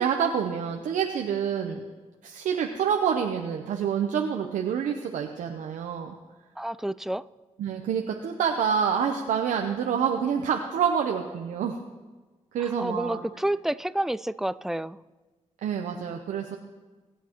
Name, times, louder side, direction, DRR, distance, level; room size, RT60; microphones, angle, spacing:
voice 1, 0.0-1.8 2.2-6.2 7.6-11.8 12.5-13.2 15.6-16.6, right 7 dB, 85° right, 3 dB, 0.7 m, -27 dB
voice 2, 6.6-7.2 12.6-15.0, right 1 dB, 5° right, 15 dB, 0.4 m, -29 dB
21.5 x 8.4 x 3.0 m, 1.3 s
supercardioid pair, 50°, 13 cm